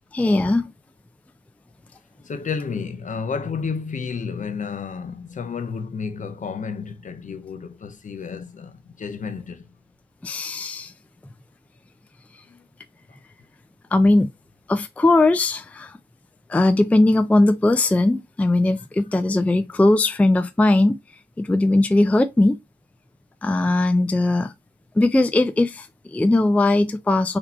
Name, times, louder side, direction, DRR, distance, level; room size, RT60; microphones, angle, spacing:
voice 1, 0.1-0.7 10.2-10.9 13.9-14.3 14.7-16.0 16.5-21.0 21.4-22.6 23.4-24.5 25.0-27.4, left 2 dB, 10° left, 0.3 m, -19 dB
voice 2, 2.2-9.6, left 5 dB, 45° left, 0.6 m, -31 dB
4.2 x 2.8 x 4.2 m
wide cardioid pair, 160°, 18 cm